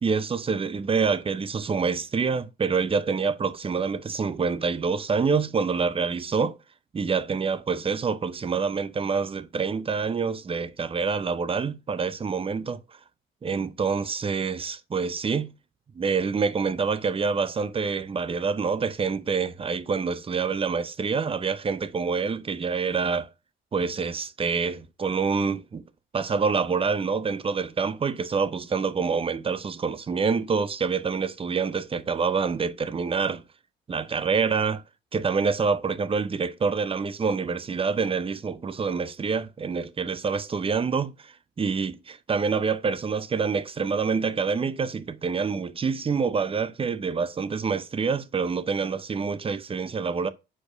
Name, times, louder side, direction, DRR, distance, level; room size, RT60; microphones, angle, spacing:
voice 1, 0.0-6.5 6.9-12.8 13.4-15.5 16.0-23.3 23.7-25.8 26.1-33.4 33.9-34.8 35.1-50.3, right 5 dB, 30° right, 0.6 m, -26 dB
5.0 x 4.2 x 5.0 m
cardioid pair, 90°, 20 cm